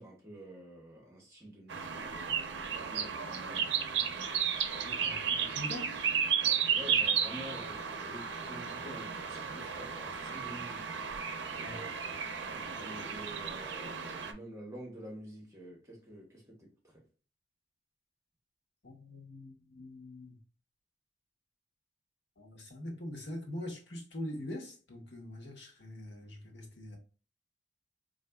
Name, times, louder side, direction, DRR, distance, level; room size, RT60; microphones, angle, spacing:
voice 1, 0.0-3.7 4.9-5.2 6.4-10.9 11.6-12.0 12.5-17.1, right 1 dB, 15° right, 0.9 m, -49 dB
sound 1, 1.7-14.3, right 7 dB, 75° right, 0.5 m, -34 dB
voice 2, 4.8-6.0 11.6-11.8 18.8-20.4 22.4-27.0, left 1 dB, 70° left, 1.0 m, -43 dB
4.1 x 2.5 x 2.2 m
head